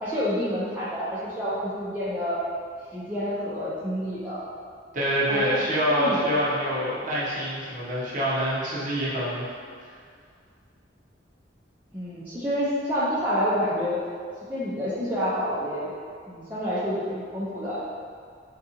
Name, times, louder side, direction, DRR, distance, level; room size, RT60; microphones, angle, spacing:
voice 1, 0.0-2.4 2.9-4.4 5.2-5.6 5.9-6.3 11.9-14.0 14.5-15.9 16.3-17.9, equal, 10° right, -11 dB, 0.4 m, -28 dB
voice 2, 4.9-9.5, equal, 45° right, -8 dB, 0.8 m, -26 dB
3.7 x 2.3 x 2.8 m, 2.1 s
head